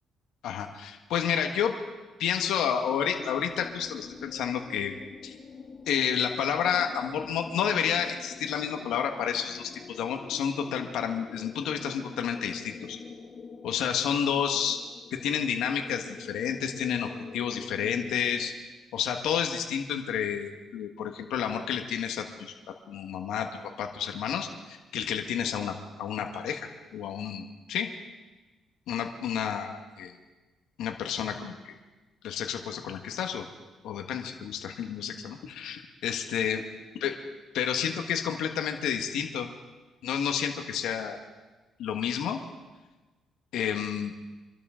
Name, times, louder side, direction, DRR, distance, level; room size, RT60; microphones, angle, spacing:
voice 1, 0.4-1.7 2.2-4.9 5.2-5.3 5.9-13.0 13.6-14.8 15.1-18.5 18.9-22.5 22.9-23.5 23.8-27.9 28.9-30.1 30.8-31.7 32.2-33.5 33.8-36.6 37.0-37.1 37.5-39.5 40.0-41.2 41.8-42.4 43.5-44.1, left 8 dB, 85° left, 4 dB, 1.5 m, -30 dB
sound 1, 3.1-18.5, left 5 dB, 45° left, 2.1 m, -46 dB
25.5 x 12.5 x 3.8 m, 1.2 s
cardioid pair, 95°, 0 cm